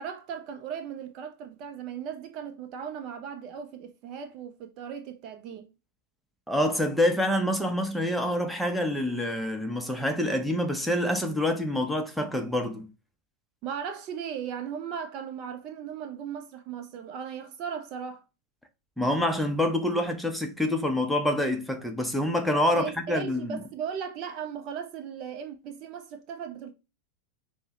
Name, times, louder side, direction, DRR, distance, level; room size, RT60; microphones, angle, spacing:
voice 1, 0.0-5.7 13.6-18.2 22.7-26.7, right 7 dB, 40° right, 0.4 m, -37 dB
voice 2, 6.5-12.9 19.0-23.6, left 1 dB, ahead, 0.6 m, -26 dB
5.4 x 2.1 x 2.8 m
figure-of-eight pair, 90°, 0 cm